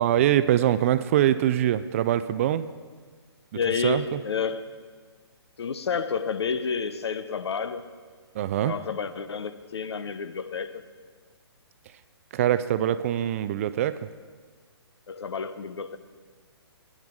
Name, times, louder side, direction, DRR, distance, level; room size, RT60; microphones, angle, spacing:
voice 1, 0.0-2.7 3.8-4.2 8.3-8.8 12.3-14.1, right 11 dB, 30° right, 0.4 m, -23 dB
voice 2, 3.5-4.6 5.6-7.9 8.6-10.8 15.1-16.0, left 6 dB, 75° left, 0.8 m, -30 dB
16.5 x 10.5 x 3.7 m
hypercardioid pair, 145°, 14 cm